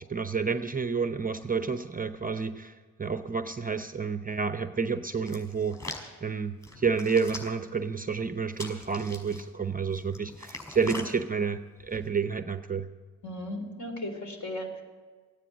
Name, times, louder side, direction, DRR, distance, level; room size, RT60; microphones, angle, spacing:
voice 1, 0.0-12.9, right 5 dB, 20° right, 10 dB, 0.7 m, -30 dB
Hands, 5.3-6.1 6.6-7.7 8.5-9.4 9.9-11.1 11.8-12.1, left 2 dB, 5° left, 5.7 m, -42 dB
voice 2, 13.2-14.8, left 1 dB, 45° left, 4 dB, 3.9 m, -36 dB
15.0 x 9.8 x 8.9 m, 1.5 s
hypercardioid pair, 55°, 40 cm